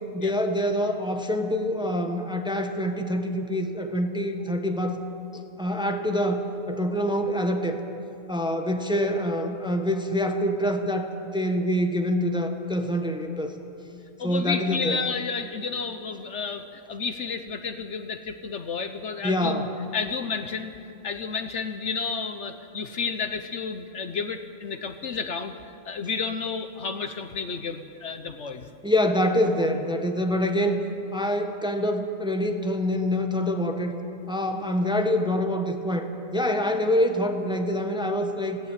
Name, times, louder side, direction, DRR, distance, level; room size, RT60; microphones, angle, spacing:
voice 1, 0.1-5.0 5.3-7.8 8.3-13.5 14.2-15.0 19.2-19.7 28.8-30.8 31.1-33.9 34.3-38.6, equal, 5° right, 5 dB, 1.2 m, -26 dB
voice 2, 14.2-19.6 19.9-20.7 21.0-28.7, left 5 dB, 60° left, 8 dB, 1.1 m, -31 dB
19.0 x 15.5 x 9.1 m, 2.7 s
omnidirectional pair, 1.4 m